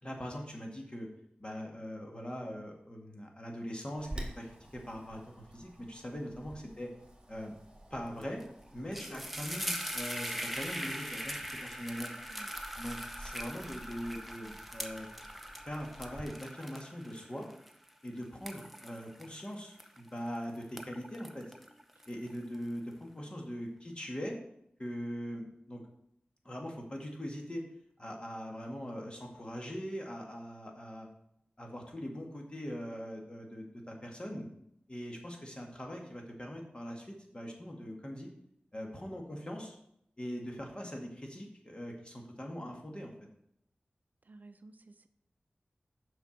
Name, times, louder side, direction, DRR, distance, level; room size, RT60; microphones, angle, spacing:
voice 1, 0.0-1.1 1.4-6.9 7.3-7.5 7.9-8.4 8.7-12.1 12.8-15.1 15.7-17.5 18.0-21.5 22.1-24.4 24.8-25.8 26.4-27.6 28.0-31.1 31.6-34.5 34.9-38.3 38.7-39.8 40.2-43.1, equal, 30° left, 1 dB, 2.0 m, -41 dB
Wind, 4.0-16.2, right 1 dB, 20° right, 2.0 m, -51 dB
sound 1, 8.2-8.4 8.7-20.3 20.6-22.5, equal, ahead, 0.8 m, -41 dB
voice 2, 44.3-45.1, right 2 dB, 55° right, 11 dB, 0.5 m, -55 dB
7.1 x 5.9 x 5.9 m, 0.76 s
wide cardioid pair, 70°, 3 cm